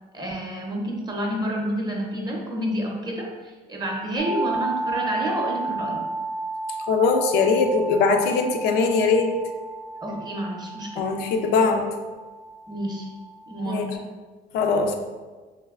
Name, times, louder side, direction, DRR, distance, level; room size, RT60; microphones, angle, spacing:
voice 1, 0.1-6.1 10.0-11.0 12.7-13.1 13.5-14.1, equal, 25° right, -1 dB, 0.6 m, -29 dB
sound 1, 4.2-13.9, right 3 dB, 75° right, 0.4 m, -33 dB
voice 2, 6.9-9.3 11.0-12.0 13.7-13.9 14.5-15.0, left 4 dB, 80° left, 5 dB, 0.4 m, -21 dB
3.3 x 3.1 x 2.3 m, 1.3 s
cardioid pair, 110°, 17 cm